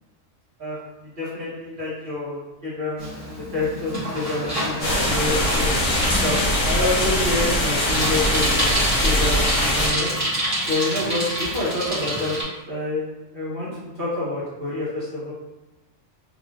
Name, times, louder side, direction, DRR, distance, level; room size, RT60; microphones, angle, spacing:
voice 1, 0.6-5.7 6.2-8.7 9.0-10.1 10.6-12.4 12.7-13.0 13.3-15.3, left 2 dB, 45° right, -9 dB, 1.1 m, -28 dB
Bicycle, 3.0-12.4, right 1 dB, 15° right, 0.7 m, -28 dB
sound 1, 4.8-9.9, left 1 dB, 85° left, 1.1 m, -22 dB
3.0 x 2.2 x 2.5 m, 1.1 s
omnidirectional pair, 1.3 m